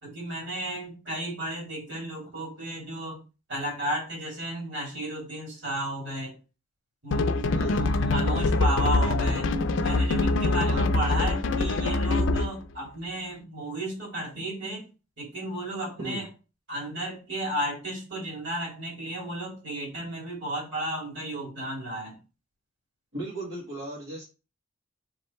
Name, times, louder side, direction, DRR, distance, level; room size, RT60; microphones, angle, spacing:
voice 1, 0.0-3.2 3.5-6.3 7.0-9.5 9.8-14.8 15.2-16.3 16.7-22.1, right 1 dB, 60° right, -3 dB, 2.6 m, -33 dB
sound 1, 7.1-12.6, left 2 dB, 65° left, 0.4 m, -24 dB
voice 2, 10.6-10.9 16.0-16.2 23.1-24.2, right 1 dB, 85° right, -5 dB, 1.5 m, -36 dB
3.7 x 3.2 x 4.2 m, 0.32 s
head